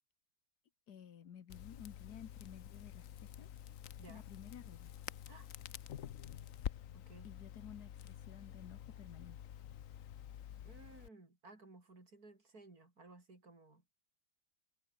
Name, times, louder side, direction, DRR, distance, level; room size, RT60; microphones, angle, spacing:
voice 1, 0.9-3.6 4.1-4.9 7.2-9.4, left 8 dB, 85° left, 1.9 m, -54 dB
Crackle, 1.5-11.1, left 10 dB, 60° left, 1.1 m, -49 dB
voice 2, 6.9-7.3 10.6-13.8, right 3 dB, 65° right, 5.2 m, -58 dB
omnidirectional pair, 1.7 m